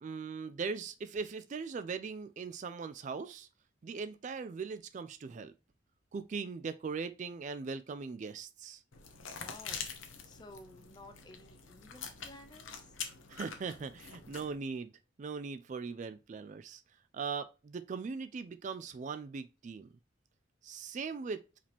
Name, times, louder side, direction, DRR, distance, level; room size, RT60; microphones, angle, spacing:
voice 1, 0.0-3.5 3.8-5.5 6.1-8.8 13.3-14.9 15.2-16.8 17.1-19.9 20.6-21.4, right 5 dB, 40° right, 0.3 m, -40 dB
sound 1, 8.9-14.6, left 6 dB, 90° left, 0.9 m, -45 dB
voice 2, 9.2-9.9 10.2-13.0, left 2 dB, 20° left, 0.6 m, -54 dB
4.8 x 2.9 x 3.4 m
head